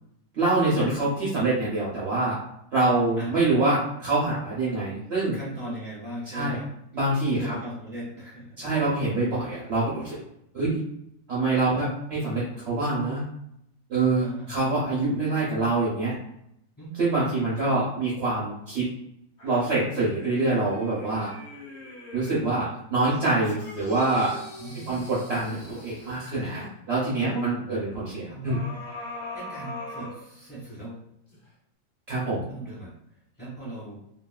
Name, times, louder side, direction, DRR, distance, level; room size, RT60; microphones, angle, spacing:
voice 1, 0.3-2.4 2.7-5.4 6.3-6.6 6.9-7.5 8.6-10.2 10.5-10.8 11.3-13.2 13.9-16.1 17.0-18.9 19.4-21.3 22.1-24.4 24.9-28.6 32.1-32.4, right 2 dB, 55° right, -7 dB, 0.7 m, -25 dB
voice 2, 3.2-3.5 5.3-6.7 7.2-8.5 13.9-14.7 16.8-17.0 24.6-25.1 27.2-27.8 28.2-28.6 29.3-31.0 32.5-32.9 33.4-34.0, right 1 dB, 5° left, -11 dB, 1.2 m, -38 dB
sound 1, 19.4-22.5 23.1-26.7 28.5-30.8 31.3-31.4, left 2 dB, 50° left, 0.6 m, -42 dB
2.9 x 2.6 x 2.3 m, 0.76 s
omnidirectional pair, 2.0 m